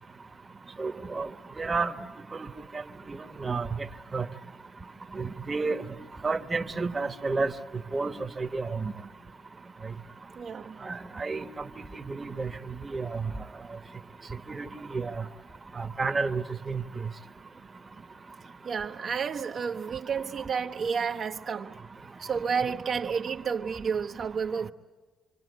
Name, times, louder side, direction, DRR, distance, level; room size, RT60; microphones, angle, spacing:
voice 1, 0.8-1.3 1.6-1.9 2.3-2.5 3.1-3.7 4.1-4.2 5.2-5.8 6.2-7.5 7.9-8.1 8.4-8.9 10.8-11.4 12.1-12.5 12.8-13.2 14.5-15.2 15.8-16.8, right 4 dB, 25° right, 1.2 m, -30 dB
voice 2, 10.4-10.8 18.6-21.8 22.2-24.7, right 6 dB, 55° right, 1.0 m, -31 dB
27.5 x 24.5 x 8.1 m
cardioid pair, 90°, 0 cm